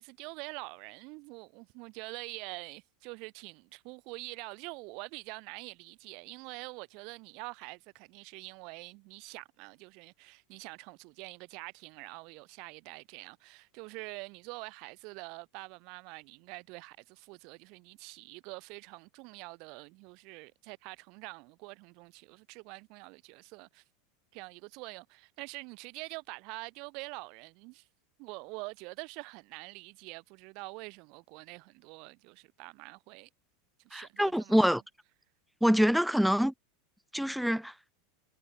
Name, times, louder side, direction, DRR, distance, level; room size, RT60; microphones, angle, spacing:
voice 1, 0.0-23.8 24.3-27.9 28.2-33.3 33.8-34.6, right 29 dB, 55° right, 6.0 m, -45 dB
voice 2, 33.9-34.8 35.6-36.5 37.1-37.7, equal, ahead, 1.0 m, -25 dB
supercardioid pair, 125°, 0 cm